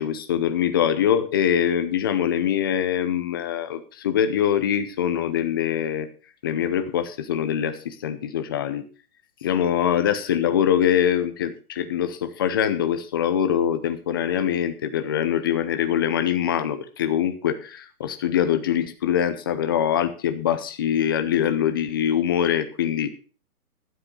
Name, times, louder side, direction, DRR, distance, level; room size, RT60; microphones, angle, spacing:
voice 1, 0.0-6.1 6.4-8.8 9.4-23.1, left 9 dB, 15° left, 9 dB, 0.6 m, -23 dB
12.0 x 7.8 x 6.0 m, 0.36 s
hypercardioid pair, 155°, 46 cm